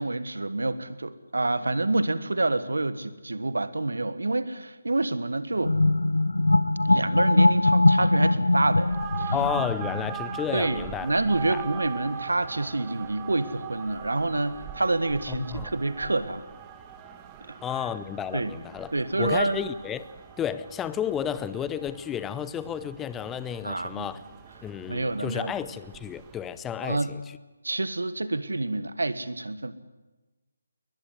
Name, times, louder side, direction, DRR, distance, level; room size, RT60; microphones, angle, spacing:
voice 1, 0.0-5.8 6.8-9.3 10.5-16.4 17.5-17.6 18.3-18.5 18.9-19.6 23.6-24.1 24.9-25.5 26.8-27.1 27.6-29.7, right 2 dB, 75° right, 13 dB, 1.5 m, -27 dB
sound 1, 5.6-10.9, left 2 dB, 80° left, 0.7 m, -22 dB
sound 2, 8.7-26.6, right 10 dB, 15° right, 1.5 m, -42 dB
voice 2, 9.3-11.2 11.5-11.6 15.3-15.7 17.6-18.9 19.2-20.0 20.4-24.2 24.6-27.2, left 9 dB, 10° left, 15 dB, 0.6 m, -32 dB
21.5 x 20.5 x 7.9 m, 1.2 s
figure-of-eight pair, 150°, 0 cm